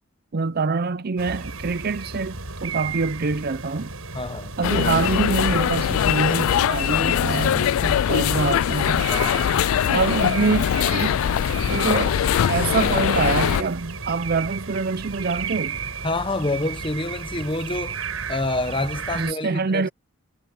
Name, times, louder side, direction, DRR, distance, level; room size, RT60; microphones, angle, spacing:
voice 1, 0.3-2.4 2.6-3.9 4.6-9.1 9.9-11.2 11.7-12.2 12.5-15.8 19.1-19.9, right 4 dB, 45° right, 0.5 m, -25 dB
sound 1, 1.2-19.3, right 5 dB, 75° right, 6.0 m, -34 dB
voice 2, 4.1-4.6 9.1-9.6 16.0-18.0 18.3-19.9, left 2 dB, 25° left, 1.2 m, -27 dB
sound 2, 4.6-13.6, left 9 dB, 70° left, 0.3 m, -22 dB
head